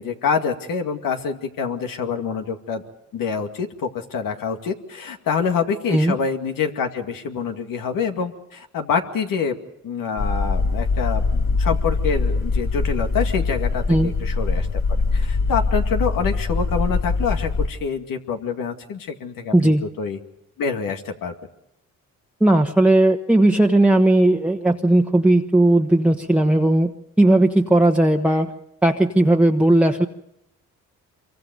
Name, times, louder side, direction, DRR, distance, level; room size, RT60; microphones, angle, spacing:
voice 1, 0.0-2.8 3.1-9.6 9.8-14.7 15.1-20.2 20.6-21.3, left 6 dB, 85° left, 5 dB, 2.2 m, -26 dB
sound 1, 10.2-17.7, left 3 dB, 55° left, 2.1 m, -22 dB
voice 2, 22.4-26.9 27.2-28.5 28.8-30.1, right 1 dB, 5° right, 2 dB, 1.2 m, -16 dB
26.0 x 24.0 x 5.3 m, 0.83 s
cardioid pair, 75°, 33 cm